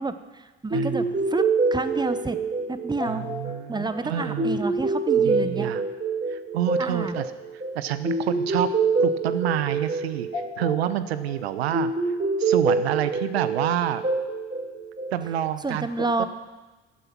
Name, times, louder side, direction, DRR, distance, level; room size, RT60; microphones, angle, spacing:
voice 1, 0.0-1.4 1.7-2.4 2.7-3.3 3.7-5.7 6.8-7.2 15.6-16.3, right 3 dB, 15° right, 11 dB, 1.0 m, -29 dB
sound 1, 0.7-15.5, right 3 dB, 30° right, 4.1 m, -26 dB
voice 2, 0.7-1.1 3.1-4.6 5.2-5.8 6.3-7.3 7.7-8.7 9.0-10.3 10.6-12.1 12.4-14.0 15.1-15.9 16.2-16.3, right 11 dB, 85° right, 13 dB, 0.6 m, -28 dB
14.5 x 8.2 x 6.0 m, 1.2 s
hypercardioid pair, 55°, 31 cm